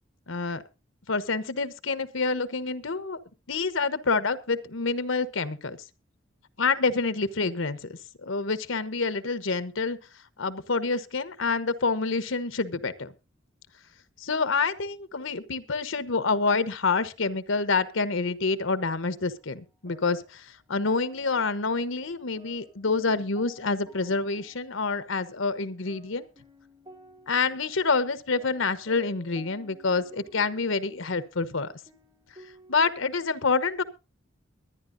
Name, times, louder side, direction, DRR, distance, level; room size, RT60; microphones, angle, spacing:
voice 1, 0.3-0.6 1.1-3.2 3.5-5.8 6.6-10.0 10.4-13.1 14.2-26.2 27.3-31.7 32.7-33.8, left 4 dB, 75° left, 14 dB, 1.1 m, -27 dB
sound 1, 19.3-32.9, left 1 dB, 25° right, 3.5 m, -55 dB
23.0 x 10.0 x 2.6 m, 0.29 s
head